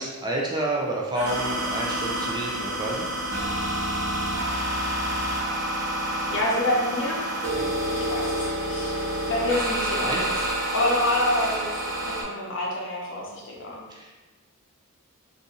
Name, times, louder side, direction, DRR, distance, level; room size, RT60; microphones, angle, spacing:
voice 1, 0.0-3.0 7.6-7.8 10.0-10.2 13.9-14.3, right 1 dB, 20° right, -2 dB, 0.4 m, -29 dB
sound 1, 1.1-12.2, right 1 dB, 60° right, 1.1 m, -28 dB
voice 2, 6.3-7.3 7.9-9.0 9.3-10.3 10.7-11.7 12.0-13.9, left 1 dB, 60° left, -3 dB, 0.8 m, -27 dB
2.7 x 2.5 x 3.7 m, 1.2 s
head